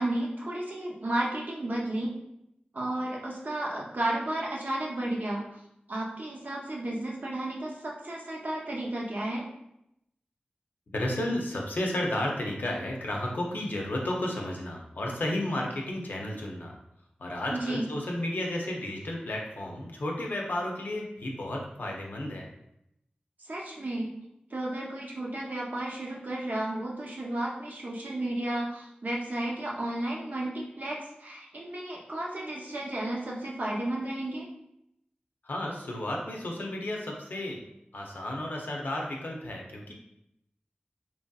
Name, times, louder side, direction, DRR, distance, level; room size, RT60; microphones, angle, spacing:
voice 1, 0.0-2.1 2.7-5.6 5.9-9.4 17.5-17.9 23.4-24.1 24.5-34.5, right 1 dB, 60° right, -3 dB, 0.7 m, -33 dB
voice 2, 10.9-16.8 17.2-22.5 35.4-37.6 37.9-39.9, left 1 dB, 80° left, -1 dB, 0.6 m, -32 dB
3.0 x 2.7 x 2.3 m, 0.80 s
wide cardioid pair, 50°, 3 cm